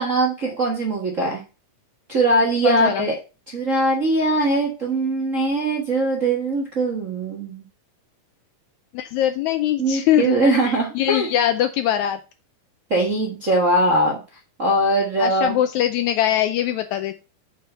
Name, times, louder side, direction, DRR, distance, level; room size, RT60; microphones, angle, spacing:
voice 1, 0.0-1.4 2.1-3.1 3.5-7.6 9.8-11.3 12.9-14.2 14.6-15.6, right 2 dB, 45° right, -1 dB, 1.0 m, -21 dB
voice 2, 2.6-3.1 8.9-12.2 15.2-17.1, left 11 dB, 80° left, 9 dB, 1.7 m, -22 dB
6.6 x 5.4 x 5.5 m, 0.31 s
omnidirectional pair, 3.8 m